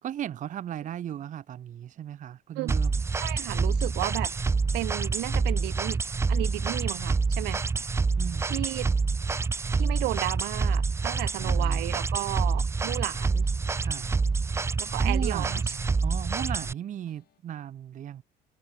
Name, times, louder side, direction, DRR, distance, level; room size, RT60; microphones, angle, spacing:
voice 1, 0.0-3.0 7.7-7.9 8.2-8.6 11.4-11.9 13.8-14.2 15.0-18.2, right 10 dB, 50° right, 0.8 m, -37 dB
sound 1, 2.7-16.7, right 4 dB, 15° right, 0.4 m, -27 dB
voice 2, 3.2-4.3 4.7-6.0 6.3-7.6 8.4-8.9 9.7-13.5 14.8-15.6, right 21 dB, 85° right, 0.5 m, -33 dB
sound 2, 11.3-17.4, left 12 dB, 65° left, 6.6 m, -66 dB
cardioid pair, 110°, 17 cm